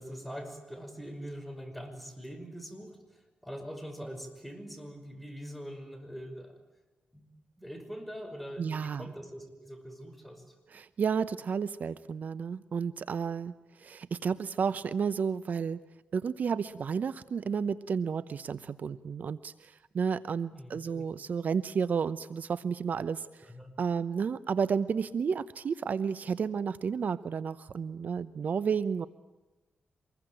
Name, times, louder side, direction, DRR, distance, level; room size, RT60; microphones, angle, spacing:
voice 1, 0.0-6.6 7.1-7.2 7.6-10.4 20.5-21.1 23.4-23.7, equal, ahead, 5 dB, 5.6 m, -43 dB
voice 2, 8.6-9.1 10.7-15.8 16.1-23.5 23.8-29.1, right 6 dB, 60° right, 16 dB, 0.8 m, -32 dB
25.5 x 21.5 x 9.0 m, 1.1 s
cardioid pair, 90°, 3 cm